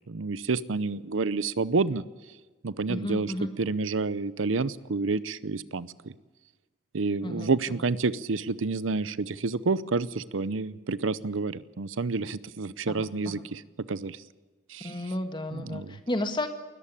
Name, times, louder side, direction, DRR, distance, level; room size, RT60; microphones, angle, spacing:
voice 1, 0.1-2.0 2.6-6.1 6.9-13.6 13.9-14.2 14.7-14.9 15.5-16.0, right 4 dB, 80° right, 17 dB, 0.7 m, -29 dB
voice 2, 2.9-3.5 7.2-7.5 12.9-13.4 14.8-16.5, left 1 dB, 25° left, 7 dB, 1.7 m, -32 dB
20.0 x 14.0 x 9.9 m, 1.3 s
head